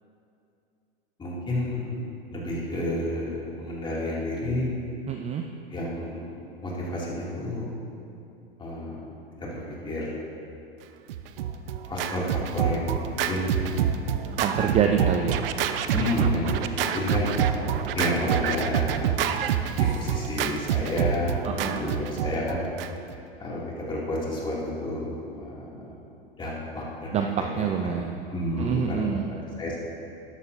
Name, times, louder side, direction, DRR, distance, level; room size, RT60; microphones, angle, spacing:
voice 1, 1.2-2.0 2.3-4.7 5.7-6.3 6.6-7.7 8.6-9.1 9.4-10.2 11.8-13.8 14.6-14.9 15.9-17.3 17.9-19.2 19.7-22.6 23.4-25.9 26.4-27.3 27.6-27.7 27.9-28.0 28.3-29.1 29.6-29.8, left 1 dB, 15° left, -5 dB, 2.7 m, -30 dB
voice 2, 5.1-5.4 14.4-15.4 21.4-21.8 27.1-27.3 27.6-28.1 28.6-29.2, right 8 dB, 20° right, 4 dB, 0.5 m, -26 dB
Scratching (performance technique), 11.1-23.2, right 9 dB, 65° right, 0.7 m, -27 dB
13.5 x 11.0 x 2.7 m, 2.7 s
hypercardioid pair, 105°, 30 cm